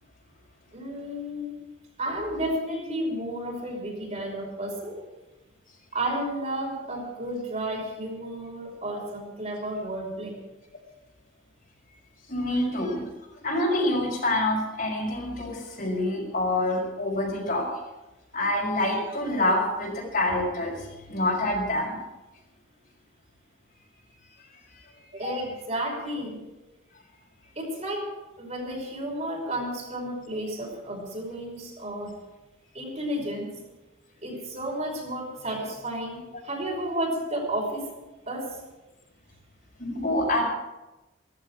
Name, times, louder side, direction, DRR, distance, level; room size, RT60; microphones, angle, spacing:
voice 1, 0.7-1.5 2.0-5.0 5.9-10.4 25.1-26.5 27.6-28.1 28.4-32.2 32.7-33.5 34.2-37.9 38.3-38.6, right 1 dB, 35° right, -2 dB, 5.4 m, -32 dB
voice 2, 12.3-13.1 13.3-17.7 18.3-22.0 24.7-24.9 39.8-40.4, left 1 dB, 50° left, -2 dB, 5.9 m, -26 dB
16.5 x 15.0 x 4.9 m, 1.1 s
head